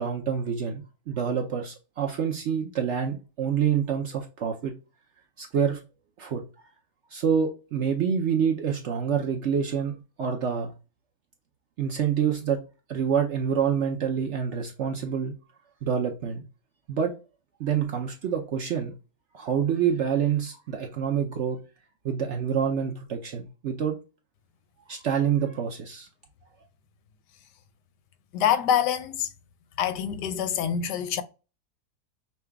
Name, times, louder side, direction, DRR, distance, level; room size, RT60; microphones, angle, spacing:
voice 1, 0.0-4.7 5.4-5.8 6.2-6.4 7.1-10.7 11.8-12.6 12.9-15.3 15.8-16.4 16.9-17.1 17.6-18.9 19.3-21.6 22.0-24.0 24.9-26.1, right 7 dB, 65° right, 0.7 m, -27 dB
voice 2, 28.3-29.3 29.8-31.2, left 9 dB, 90° left, 1.2 m, -25 dB
5.7 x 2.3 x 3.4 m
omnidirectional pair, 1.8 m